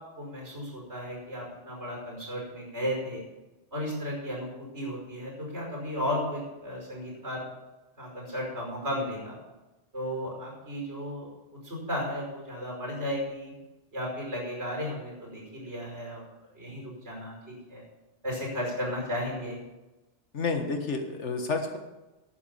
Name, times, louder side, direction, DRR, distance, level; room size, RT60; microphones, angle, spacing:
voice 1, 0.2-3.2 3.7-7.4 8.0-9.4 9.9-13.5 13.9-16.3 16.5-17.8 18.2-19.6, equal, 70° right, -1 dB, 5.4 m, -34 dB
voice 2, 20.3-21.8, left 4 dB, 85° left, 5 dB, 1.8 m, -30 dB
11.0 x 9.3 x 7.0 m, 1.1 s
omnidirectional pair, 1.2 m